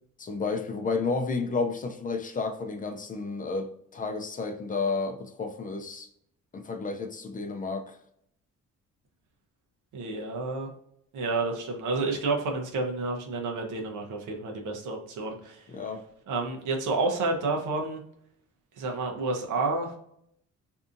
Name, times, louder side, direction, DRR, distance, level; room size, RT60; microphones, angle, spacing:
voice 1, 0.2-6.1 6.5-8.0 15.7-16.0, left 4 dB, 30° left, 0.4 m, -31 dB
voice 2, 9.9-10.7 11.1-15.7 16.3-18.0 18.8-20.0, right 3 dB, 85° right, 0.8 m, -30 dB
2.7 x 2.4 x 2.5 m
cardioid pair, 90°, 30 cm